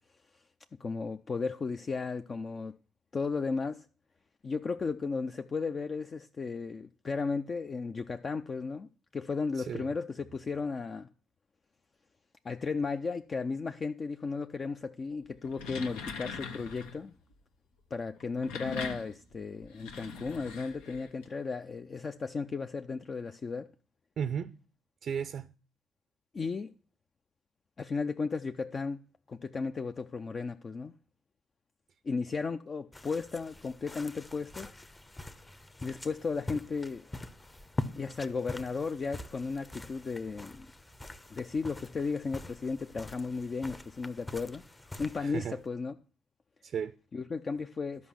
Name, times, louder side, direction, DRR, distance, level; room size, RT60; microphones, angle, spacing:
voice 1, 0.8-2.7 3.1-3.9 4.4-11.1 12.4-17.1 17.9-23.7 26.3-26.7 27.8-29.0 29.3-30.9 32.0-34.7 35.8-37.1 37.9-40.7 41.3-44.6 45.0-45.9 47.1-48.1, left 4 dB, 40° left, 0.5 m, -35 dB
voice 2, 9.5-9.9 24.2-24.6 25.0-25.5 45.2-45.6 46.6-46.9, right 7 dB, 55° right, 0.5 m, -35 dB
sound 1, 15.3-17.0 18.2-21.2, left 5 dB, 85° left, 1.2 m, -41 dB
sound 2, 32.9-45.7, left 2 dB, 20° left, 0.9 m, -44 dB
11.0 x 5.2 x 7.1 m
hypercardioid pair, 60°, 0 cm